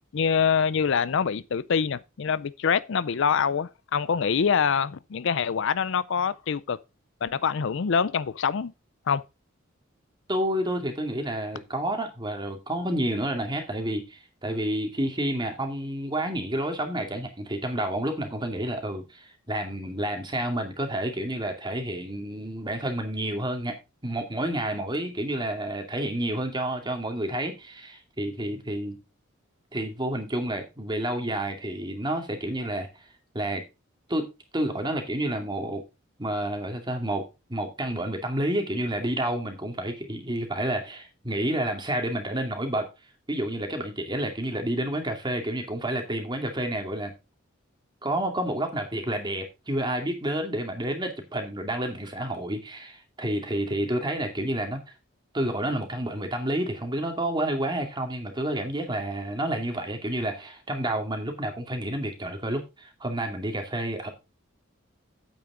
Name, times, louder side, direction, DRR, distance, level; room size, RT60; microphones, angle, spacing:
voice 1, 0.0-6.8 7.2-8.7 9.1-9.2, left 6 dB, 65° left, 0.5 m, -25 dB
voice 2, 10.3-23.7 24.0-29.0 29.7-32.9 33.3-33.6 34.1-35.8 36.2-42.9 43.3-47.1 48.0-54.8 55.3-64.1, right 1 dB, 20° right, 2.4 m, -29 dB
9.0 x 8.7 x 3.8 m
head